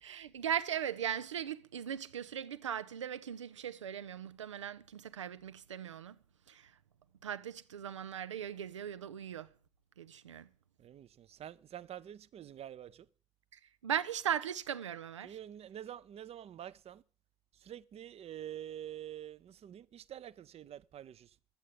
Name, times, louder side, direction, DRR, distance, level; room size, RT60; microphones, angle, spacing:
voice 1, 0.0-6.2 6.5-6.7 7.2-9.5 10.0-10.5 13.5-15.4, right 9 dB, 80° right, 0.6 m, -38 dB
voice 2, 10.8-13.1 15.2-17.0 17.6-21.3, right 11 dB, 40° right, 0.7 m, -47 dB
13.0 x 8.6 x 6.8 m
figure-of-eight pair, 50°, 15 cm